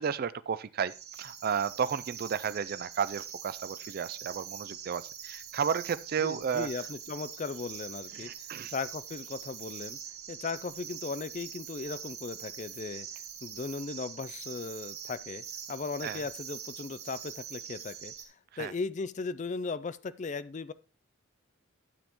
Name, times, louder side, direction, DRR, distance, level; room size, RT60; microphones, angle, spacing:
voice 1, 0.0-6.7 8.1-8.7 16.0-16.2 18.5-18.7, right 7 dB, 45° right, 0.3 m, -33 dB
sound 1, 0.9-18.2, right 8 dB, 90° right, 2.1 m, -44 dB
voice 2, 6.2-8.3 8.7-10.0 10.3-13.1 13.4-18.1 18.6-20.7, left 4 dB, 35° left, 0.4 m, -37 dB
12.0 x 7.4 x 3.0 m
head